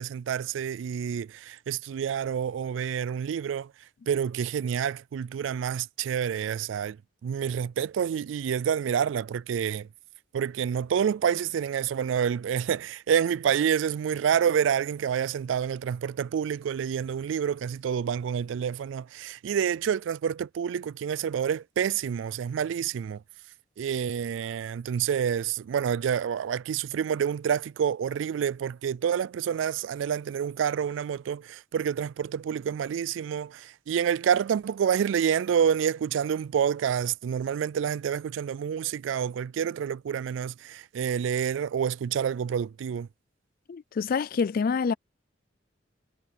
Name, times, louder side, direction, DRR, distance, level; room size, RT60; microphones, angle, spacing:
voice 1, 0.0-3.7 4.1-7.0 7.2-9.9 10.3-23.2 23.8-43.1, right 8 dB, 80° right, 0.3 m, -28 dB
voice 2, 43.7-44.9, left 5 dB, 50° left, 0.4 m, -26 dB
head